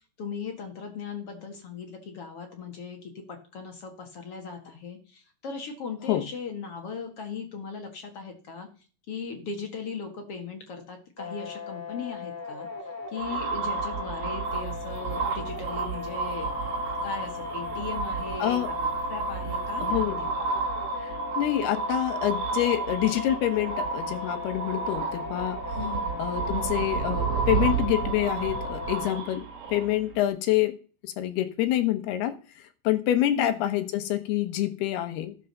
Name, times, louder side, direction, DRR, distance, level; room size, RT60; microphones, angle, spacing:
voice 1, 0.2-8.7 9.1-12.7 13.1-16.5 16.8-20.6 25.8-26.3 33.4-33.6, left 5 dB, 45° left, 4 dB, 2.1 m, -38 dB
sound 1, 11.2-29.2, left 5 dB, 5° right, 2.0 m, -38 dB
sound 2, 13.2-30.2, right 5 dB, 60° right, 4.0 m, -31 dB
sound 3, 14.4-19.9, left 2 dB, 20° left, 2.8 m, -51 dB
voice 2, 19.8-20.2 21.0-25.6 26.2-30.8 31.0-35.3, left 13 dB, 80° left, 9 dB, 3.1 m, -27 dB
14.5 x 8.3 x 6.7 m, 0.39 s
omnidirectional pair, 4.6 m